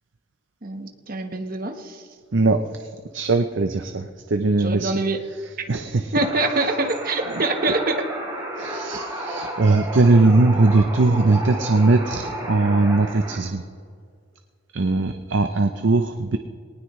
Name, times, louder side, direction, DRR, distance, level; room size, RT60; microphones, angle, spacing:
voice 1, 0.6-2.0 4.6-5.2 6.1-8.0, right 2 dB, 45° right, 5 dB, 1.3 m, -25 dB
voice 2, 2.3-4.9 5.7-6.1 8.6-13.6 14.7-16.4, right 3 dB, 60° right, 7 dB, 0.6 m, -20 dB
sound 1, 6.2-13.4, right 1 dB, 15° right, 3.1 m, -32 dB
20.0 x 19.0 x 3.2 m, 2.1 s
head